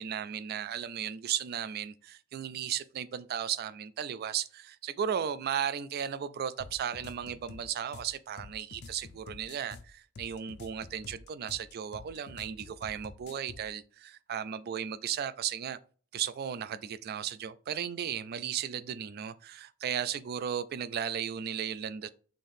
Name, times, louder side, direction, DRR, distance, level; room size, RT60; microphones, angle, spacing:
voice 1, 0.0-15.8 16.1-22.1, right 8 dB, 50° right, 0.3 m, -35 dB
sound 1, 6.6-13.7, left 3 dB, 55° left, 0.4 m, -48 dB
5.6 x 2.6 x 3.4 m
head